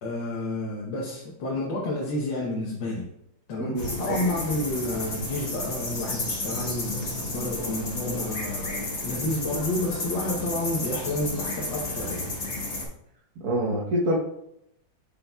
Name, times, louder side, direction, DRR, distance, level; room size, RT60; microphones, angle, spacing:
voice 1, 0.0-3.1 3.5-12.3, left 1 dB, 80° left, -3 dB, 1.7 m, -30 dB
voice 2, 3.6-4.4 13.4-14.2, right 1 dB, 55° right, -5 dB, 1.5 m, -27 dB
sound 1, 3.8-12.9, left 2 dB, 40° left, 1.4 m, -32 dB
7.7 x 5.7 x 2.3 m, 0.78 s
omnidirectional pair, 2.0 m